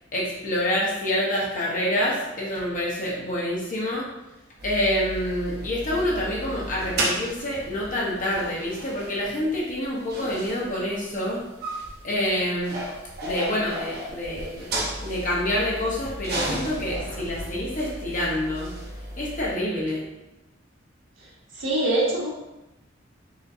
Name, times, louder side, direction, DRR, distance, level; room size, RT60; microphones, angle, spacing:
voice 1, 0.1-4.1 4.6-11.4 12.0-12.8 13.2-14.7 15.0-18.7 19.2-20.0, left 1 dB, 45° left, -5 dB, 1.2 m, -27 dB
sound 1, 4.6-19.5, right 1 dB, 55° right, 0.8 m, -34 dB
voice 2, 21.5-22.3, right 2 dB, 75° right, -5 dB, 1.3 m, -23 dB
4.2 x 3.6 x 2.7 m, 0.95 s
head